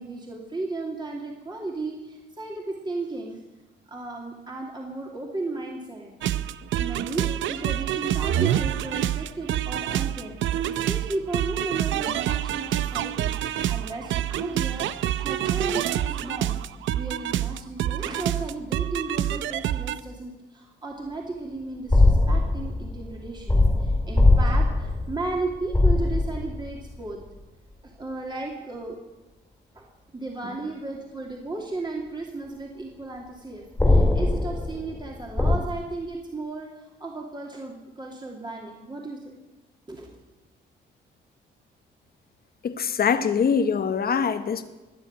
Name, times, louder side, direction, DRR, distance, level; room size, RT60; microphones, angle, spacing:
voice 1, 0.0-3.4 3.9-6.1 6.8-27.2 27.8-29.0 29.7-29.9 30.1-36.7 37.0-39.4 39.9-40.2, right 2 dB, 20° right, -1 dB, 2.8 m, -35 dB
sound 1, 6.2-20.0, right 12 dB, 75° right, 0.6 m, -27 dB
sound 2, 21.9-26.9 33.8-35.6, left 2 dB, 10° left, 2.7 m, -21 dB
voice 2, 42.6-44.6, left 6 dB, 50° left, 10 dB, 1.3 m, -23 dB
21.0 x 7.7 x 8.8 m, 1.1 s
cardioid pair, 90°, 20 cm